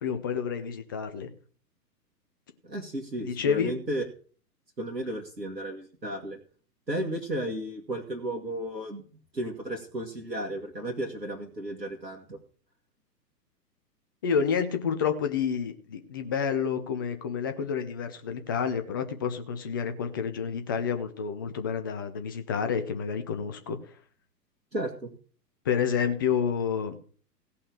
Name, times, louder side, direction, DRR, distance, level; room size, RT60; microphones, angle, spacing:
voice 1, 0.0-1.3 3.2-3.8 14.2-23.8 25.6-27.0, left 7 dB, 15° left, 8 dB, 0.4 m, -29 dB
voice 2, 2.6-4.1 4.8-6.4 6.9-9.0 9.3-12.4 24.7-25.1, right 1 dB, 85° right, 1 dB, 2.1 m, -34 dB
16.5 x 5.6 x 6.2 m, 0.42 s
figure-of-eight pair, 115°, 49 cm